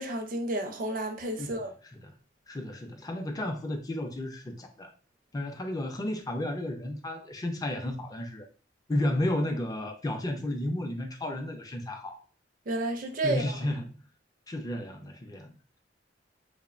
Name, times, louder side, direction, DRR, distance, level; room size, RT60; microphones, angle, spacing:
voice 1, 0.0-1.7 12.7-13.4, right 1 dB, 50° right, 0.5 m, -31 dB
voice 2, 2.5-4.9 5.3-8.5 8.9-12.2 13.2-14.0 14.5-15.5, left 1 dB, 20° left, 0.4 m, -32 dB
2.9 x 2.1 x 2.4 m
head